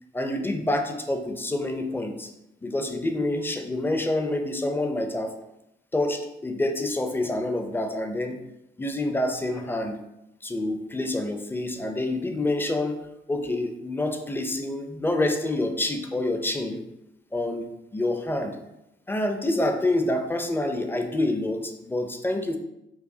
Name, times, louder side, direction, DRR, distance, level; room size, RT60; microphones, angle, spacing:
voice 1, 0.1-2.3 2.6-5.4 5.9-8.4 8.8-10.0 10.4-16.8 17.3-18.6 19.1-22.6, left 1 dB, 10° left, 5 dB, 0.4 m, -27 dB
4.6 x 2.3 x 2.7 m, 0.87 s
cardioid pair, 90°, 20 cm